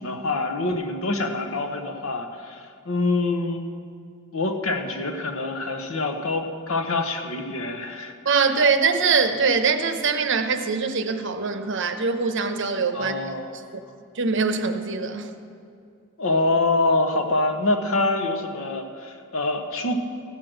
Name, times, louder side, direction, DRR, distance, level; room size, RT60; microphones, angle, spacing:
voice 1, 0.0-3.7 4.3-8.1 12.9-13.6 16.2-20.0, left 2 dB, 75° left, 5 dB, 1.0 m, -25 dB
voice 2, 8.2-13.3 13.7-13.8 14.1-15.3, right 5 dB, 60° right, 7 dB, 0.8 m, -23 dB
15.0 x 6.2 x 6.4 m, 2.4 s
head